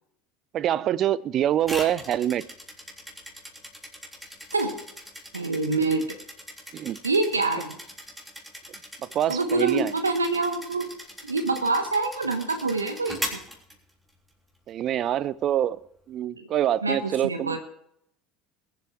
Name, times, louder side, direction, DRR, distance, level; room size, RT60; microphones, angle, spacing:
voice 1, 0.5-2.5 6.7-7.0 9.1-9.9 14.7-15.8 16.1-17.6, right 11 dB, 45° right, 21 dB, 0.5 m, -25 dB
sound 1, 1.6-14.3, equal, 5° right, 3.6 m, -40 dB
voice 2, 5.3-6.0 7.0-7.8 9.3-10.9 11.2-13.4 16.4-16.5 16.8-17.6, right 3 dB, 90° right, 7 dB, 1.2 m, -26 dB
21.5 x 7.9 x 4.6 m, 0.73 s
figure-of-eight pair, 65°, 0 cm